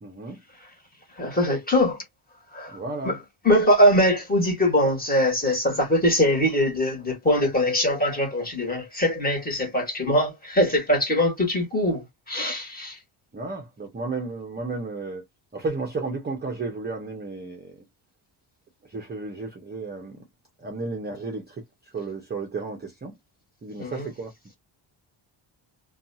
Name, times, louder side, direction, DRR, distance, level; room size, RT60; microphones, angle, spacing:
voice 1, 0.0-0.4 2.7-3.2 13.3-15.2 15.5-17.8 18.9-20.2 20.6-21.6 21.9-23.2 23.6-24.3, right 3 dB, 20° right, 0.6 m, -33 dB
voice 2, 1.2-2.0 2.5-2.8 3.0-3.2 3.4-13.0 23.8-24.1, equal, 20° left, 1.3 m, -22 dB
2.6 x 2.3 x 2.6 m
cardioid pair, 150°, 50 cm